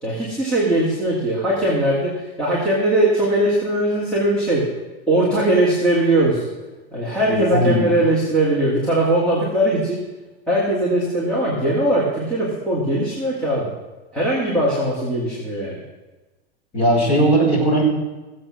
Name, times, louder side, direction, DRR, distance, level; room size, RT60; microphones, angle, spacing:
voice 1, 0.0-4.6 5.1-6.4 6.9-10.0 10.5-13.7 14.1-15.8, right 1 dB, 5° left, -9 dB, 2.3 m, -20 dB
voice 2, 7.3-7.8 16.7-17.8, right 1 dB, 20° left, -6 dB, 5.0 m, -18 dB
16.5 x 7.8 x 6.4 m, 1.1 s
supercardioid pair, 175°, 33 cm